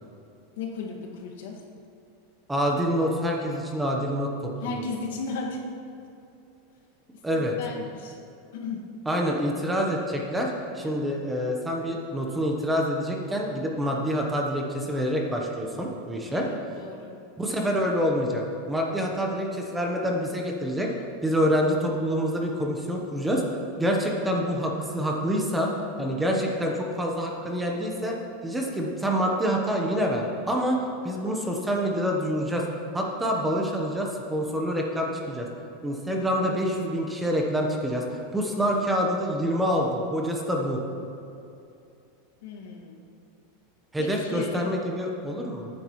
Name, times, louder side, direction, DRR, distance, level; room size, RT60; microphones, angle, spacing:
voice 1, 0.6-1.6 4.6-5.9 7.1-8.2 8.5-8.8 16.3-17.2 42.4-43.0 44.0-44.8, left 4 dB, 75° left, -1 dB, 2.0 m, -35 dB
voice 2, 2.5-4.5 7.2-7.5 9.1-16.5 17.4-20.9 21.2-23.4 23.8-25.7 26.0-28.2 28.4-32.6 32.9-35.5 35.8-40.8 43.9-45.7, equal, 5° right, 0 dB, 1.0 m, -26 dB
18.5 x 9.8 x 3.2 m, 2.6 s
supercardioid pair, 165°, 0 cm